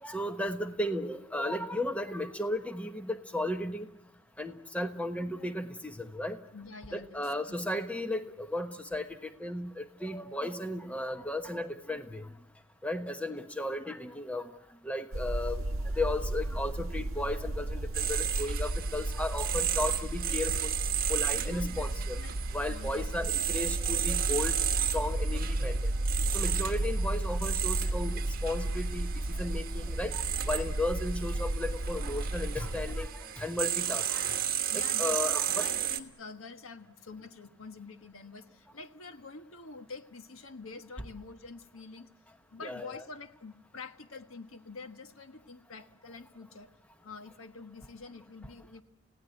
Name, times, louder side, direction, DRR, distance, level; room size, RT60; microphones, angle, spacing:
voice 1, 0.0-3.9 4.4-6.4 6.9-12.3 12.8-14.5 14.8-15.7 15.9-20.7 21.1-22.2 22.5-24.6 24.9-25.9 26.3-34.3 34.7-35.7 42.6-43.0, left 1 dB, 5° left, 7 dB, 1.1 m, -35 dB
voice 2, 6.5-7.6 21.3-22.4 22.7-23.3 34.7-42.1 42.5-46.7 47.0-48.8, left 4 dB, 80° left, 8 dB, 1.4 m, -47 dB
sound 1, 15.1-33.1, right 1 dB, 75° right, 0.8 m, -33 dB
sound 2, 17.9-36.0, right 11 dB, 45° right, 1.4 m, -34 dB
30.0 x 17.0 x 8.1 m, 0.97 s
head